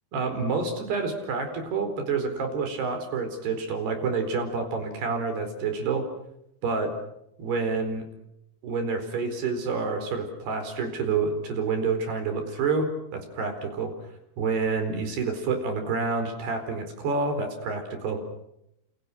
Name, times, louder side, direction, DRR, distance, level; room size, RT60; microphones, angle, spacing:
voice 1, 0.1-6.1 6.6-7.0 7.4-8.0 8.6-13.9 14.4-18.2, right 4 dB, 55° right, 7 dB, 6.3 m, -28 dB
30.0 x 29.0 x 6.2 m, 0.80 s
omnidirectional pair, 5.7 m